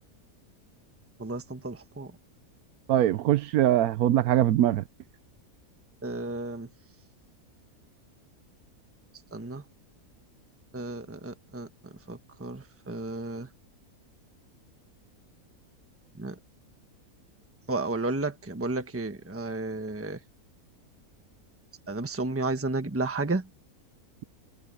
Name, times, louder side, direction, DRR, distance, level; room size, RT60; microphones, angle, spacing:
voice 1, 1.2-2.1 6.0-6.7 9.3-9.6 10.7-11.7 12.1-13.5 16.2-16.3 17.7-20.2 21.9-23.4, right 2 dB, 10° right, 1.1 m, -32 dB
voice 2, 2.9-4.8, right 12 dB, 85° right, 1.1 m, -22 dB
omnidirectional pair, 1.5 m